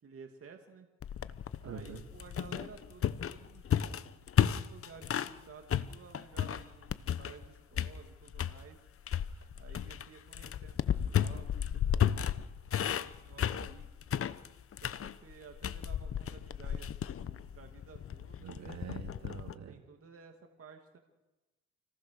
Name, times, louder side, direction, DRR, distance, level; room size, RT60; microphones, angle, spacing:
voice 1, 0.0-0.9 1.6-8.8 9.5-12.3 12.8-13.9 14.8-18.6 19.7-21.0, right 5 dB, 50° right, 4 dB, 2.6 m, -54 dB
sound 1, 1.0-5.4 5.7-7.5 7.7-8.6 9.1-19.5, left 9 dB, 50° left, 1.0 m, -33 dB
voice 2, 1.6-2.0 9.3-9.5 18.4-19.8, right 7 dB, 65° right, 5 dB, 2.9 m, -45 dB
28.5 x 19.0 x 6.6 m, 1.0 s
cardioid pair, 90°, 30 cm